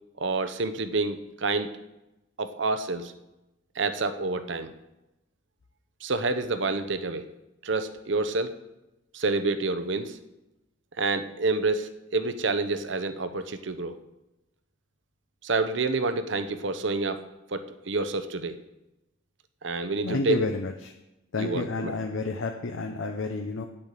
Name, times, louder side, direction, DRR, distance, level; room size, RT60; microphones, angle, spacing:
voice 1, 0.2-1.7 2.4-3.1 3.7-4.7 6.0-7.2 7.6-8.5 9.1-10.2 11.0-14.0 15.4-17.2 17.5-18.6 19.6-20.4 21.4-21.9, right 3 dB, 65° right, 11 dB, 0.8 m, -28 dB
voice 2, 20.0-20.9 21.3-23.7, left 3 dB, 80° left, 4 dB, 0.7 m, -30 dB
9.1 x 8.7 x 6.6 m, 0.96 s
head